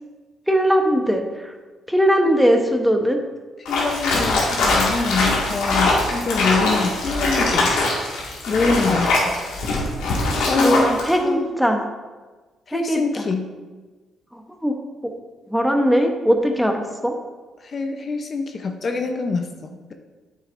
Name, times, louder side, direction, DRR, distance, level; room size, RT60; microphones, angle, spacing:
voice 1, 0.5-1.5 1.9-3.2 10.6-11.8 12.7-13.2 14.3-14.7 15.5-17.1, equal, ahead, 4 dB, 0.9 m, -20 dB
sound 1, 3.7-11.1, left 2 dB, 85° left, 1.9 m, -22 dB
voice 2, 3.7-7.7 8.5-9.3 10.5-10.9 11.2-11.5 12.7-13.5 17.6-19.9, left 4 dB, 45° left, 5 dB, 0.8 m, -25 dB
8.8 x 6.9 x 2.6 m, 1.3 s
supercardioid pair, 75°, 0 cm